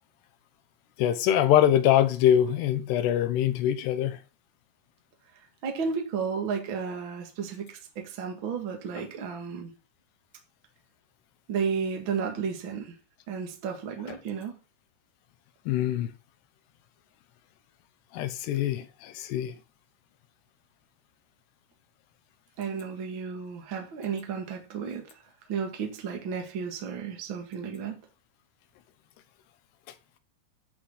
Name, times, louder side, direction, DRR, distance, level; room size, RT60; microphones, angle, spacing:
voice 1, 1.0-4.2 15.7-16.1 18.1-19.5, left 11 dB, 75° left, 3.0 m, -23 dB
voice 2, 5.6-9.7 11.5-13.0 13.3-14.6 22.6-25.0 25.5-28.0, right 6 dB, 40° right, 2.0 m, -33 dB
10.5 x 6.0 x 5.7 m
omnidirectional pair, 5.1 m